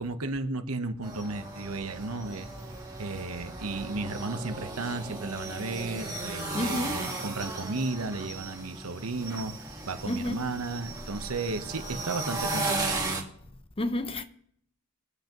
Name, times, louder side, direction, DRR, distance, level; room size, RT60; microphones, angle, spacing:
voice 1, 0.0-2.5 3.0-13.2, right 3 dB, 85° right, 1.0 m, -34 dB
sound 1, 1.0-13.2, right 2 dB, 15° right, 1.7 m, -36 dB
voice 2, 6.5-7.1 10.0-10.5 13.8-14.2, left 1 dB, 25° left, 0.7 m, -30 dB
22.5 x 8.0 x 3.0 m
head